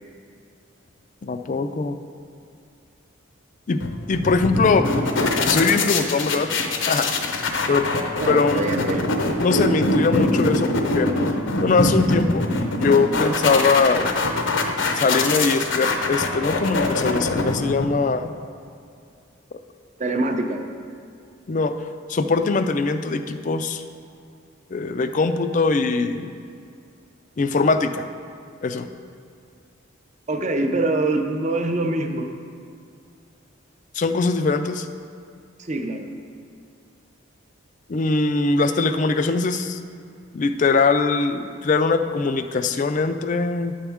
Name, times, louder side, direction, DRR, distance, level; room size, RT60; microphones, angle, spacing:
voice 1, 1.2-2.0 3.7-3.8 4.1-4.9 5.5-6.5 6.9-7.1 7.7-7.9 8.3-8.6 9.4-11.1 11.6-12.5 12.8-14.1 14.9-18.3 21.5-21.8 22.1-23.8 24.7-26.3 27.4-28.1 28.6-28.9 33.9-34.9 37.9-39.8 40.3-43.7, left 4 dB, 40° left, 9 dB, 0.3 m, -21 dB
sound 1, 3.8-18.2, left 2 dB, 65° left, 0.7 m, -23 dB
voice 2, 8.2-9.1 20.0-20.6 30.3-32.3 35.6-36.1, right 2 dB, 35° right, 5 dB, 0.6 m, -24 dB
10.0 x 7.2 x 3.5 m, 2.4 s
head